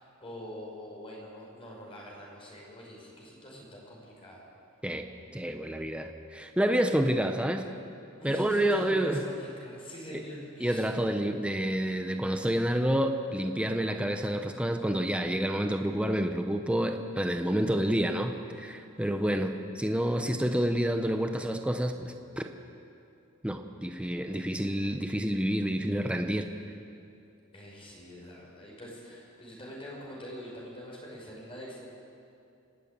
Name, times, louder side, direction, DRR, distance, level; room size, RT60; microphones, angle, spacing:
voice 1, 0.0-4.4 8.2-10.9 19.0-19.3 27.5-31.9, equal, 25° left, -3 dB, 5.7 m, -44 dB
voice 2, 4.8-7.7 8.2-9.2 10.1-10.2 10.6-22.5 23.4-26.5, right 1 dB, 5° right, 5 dB, 0.9 m, -29 dB
27.5 x 12.5 x 8.9 m, 2.6 s
head